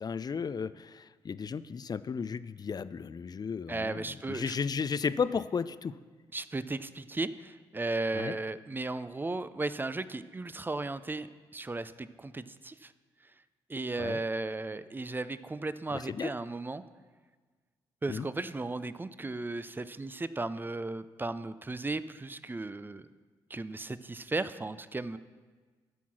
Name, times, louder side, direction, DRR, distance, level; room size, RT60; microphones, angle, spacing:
voice 1, 0.0-4.0 4.3-5.9 8.1-8.4 14.0-14.2 16.1-16.3 18.1-18.3, left 6 dB, 40° left, 15 dB, 0.4 m, -34 dB
voice 2, 3.7-4.6 6.3-11.3 11.5-12.9 13.7-16.8 18.0-23.1 23.5-25.2, right 2 dB, 20° right, 14 dB, 0.5 m, -35 dB
12.0 x 4.6 x 6.1 m, 1.4 s
hypercardioid pair, 45°, 11 cm